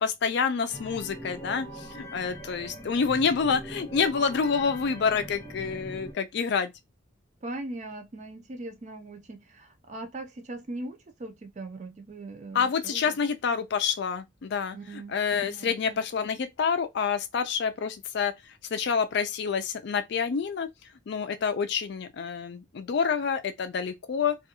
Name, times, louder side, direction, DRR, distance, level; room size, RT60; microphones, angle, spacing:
voice 1, 0.0-6.7 12.5-20.7 21.1-24.4, left 6 dB, 60° left, 0.4 m, -28 dB
sound 1, 0.7-6.1, equal, 10° left, 0.7 m, -42 dB
voice 2, 7.4-13.2 14.7-15.2 15.4-16.0, right 2 dB, 40° right, 0.4 m, -40 dB
2.3 x 2.2 x 2.9 m
head